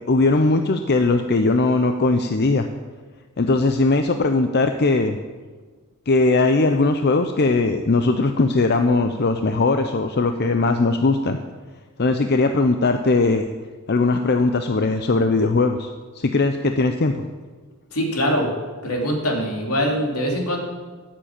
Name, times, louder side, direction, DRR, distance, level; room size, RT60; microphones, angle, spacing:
voice 1, 0.1-2.7 3.4-5.2 6.1-11.4 12.0-13.5 13.9-15.9 16.1-17.3, left 3 dB, 50° left, 6 dB, 0.6 m, -19 dB
voice 2, 17.9-18.5 18.8-20.6, equal, 75° left, 0 dB, 3.0 m, -23 dB
13.5 x 7.5 x 8.9 m, 1.4 s
head